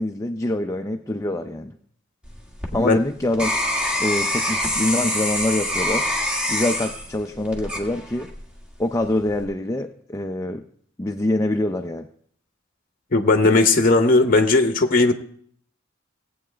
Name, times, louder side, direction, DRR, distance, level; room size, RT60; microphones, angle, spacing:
voice 1, 0.0-1.8 2.7-3.5 4.0-6.1 6.5-8.3 8.8-10.6 11.0-12.1, left 1 dB, 15° left, 5 dB, 0.5 m, -25 dB
sound 1, 2.2-8.5 9.0-9.4, left 1 dB, 5° right, 1.7 m, -25 dB
voice 2, 13.1-15.1, left 3 dB, 45° left, 6 dB, 0.8 m, -17 dB
17.5 x 8.6 x 3.4 m, 0.63 s
head